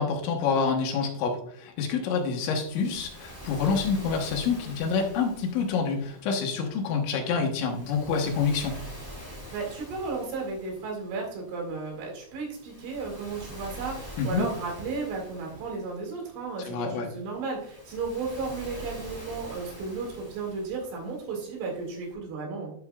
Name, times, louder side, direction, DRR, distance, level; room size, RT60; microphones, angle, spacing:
voice 1, 0.0-8.8 14.2-14.5 16.6-17.1, left 5 dB, 75° left, 1 dB, 3.4 m, -27 dB
Waves surf, 2.1-22.1, equal, 30° left, 0.3 m, -46 dB
voice 2, 9.5-22.7, right 4 dB, 80° right, -1 dB, 4.6 m, -34 dB
11.5 x 6.0 x 2.3 m, 0.65 s
omnidirectional pair, 5.5 m